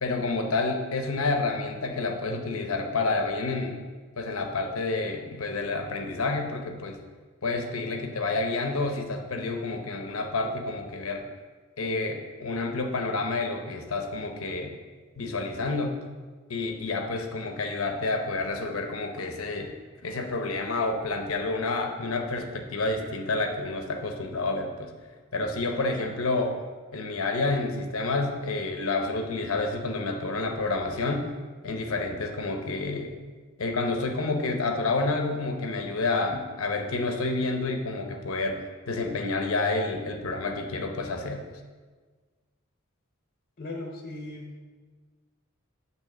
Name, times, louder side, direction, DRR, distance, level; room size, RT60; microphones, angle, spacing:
voice 1, 0.0-3.8 4.2-7.0 7.4-11.2 11.8-14.7 15.2-16.0 16.5-19.7 20.0-24.9 25.3-26.6 26.9-31.3 31.6-33.1 33.6-38.6 38.9-41.4, left 3 dB, 85° left, 4 dB, 0.8 m, -29 dB
voice 2, 43.6-44.6, left 2 dB, 40° left, 1 dB, 0.8 m, -38 dB
9.2 x 3.1 x 6.5 m, 1.4 s
head